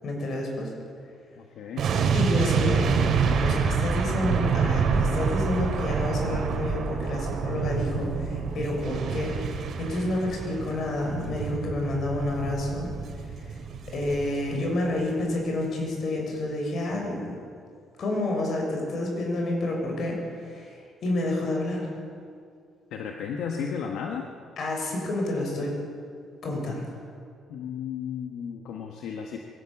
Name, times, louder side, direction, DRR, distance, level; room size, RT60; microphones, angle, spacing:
voice 1, 0.0-0.7 2.1-3.0 3.4-12.9 13.9-17.2 18.0-20.7 21.0-21.9 24.6-25.8 26.4-26.9, left 1 dB, 55° left, 0 dB, 7.0 m, -29 dB
voice 2, 1.4-1.9 22.9-24.3 27.5-29.4, left 7 dB, 80° left, 2 dB, 1.6 m, -34 dB
sound 1, 1.8-14.9 15.2-15.4, right 6 dB, 65° right, 3.2 m, -27 dB
23.0 x 17.0 x 7.3 m, 2.4 s
cardioid pair, 110°, 0 cm